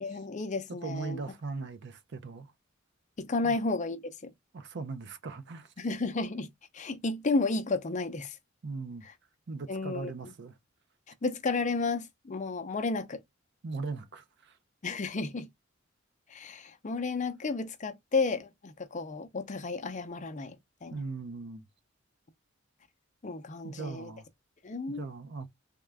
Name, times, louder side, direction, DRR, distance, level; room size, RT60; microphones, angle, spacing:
voice 1, 0.0-1.2 3.2-4.3 5.8-6.5 6.7-8.4 9.7-10.1 11.2-13.2 14.8-15.5 16.3-20.6 20.8-21.0 23.2-24.1 24.6-25.1, left 3 dB, 35° left, 0.5 m, -32 dB
voice 2, 0.8-2.5 3.4-3.6 4.5-5.7 8.6-9.0 9.5-10.6 13.6-14.6 20.9-21.7 23.6-24.3 24.9-25.5, right 4 dB, 60° right, 0.5 m, -39 dB
3.6 x 2.3 x 3.3 m
head